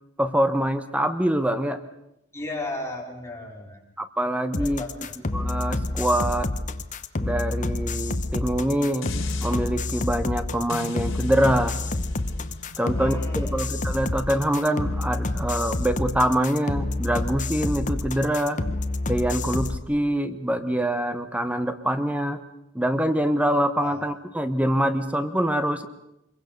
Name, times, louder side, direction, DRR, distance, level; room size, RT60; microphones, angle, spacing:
voice 1, 0.2-1.8 4.0-4.8 5.3-6.5 7.2-9.1 9.4-11.7 12.8-18.6 19.1-22.4 22.7-25.9, equal, 5° right, 10 dB, 1.0 m, -24 dB
voice 2, 2.3-3.8 4.6-5.2 12.8-13.6 23.8-24.1, left 2 dB, 15° left, 0 dB, 4.2 m, -35 dB
sound 1, 4.5-19.8, left 2 dB, 40° left, 1.0 m, -28 dB
sound 2, 9.0-9.6 10.7-15.8 16.3-16.4, left 3 dB, 75° left, 3.0 m, -41 dB
25.0 x 22.5 x 6.6 m, 0.86 s
head